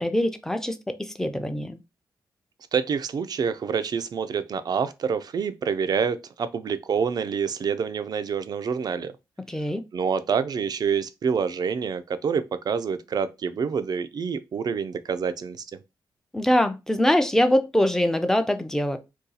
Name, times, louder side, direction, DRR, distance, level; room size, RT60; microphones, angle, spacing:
voice 1, 0.0-1.8 9.5-9.8 16.3-19.0, left 1 dB, 5° left, 0.4 m, -23 dB
voice 2, 2.7-9.1 9.9-15.6, right 6 dB, 55° right, 0.4 m, -27 dB
2.7 x 2.3 x 3.8 m
cardioid pair, 85°, 8 cm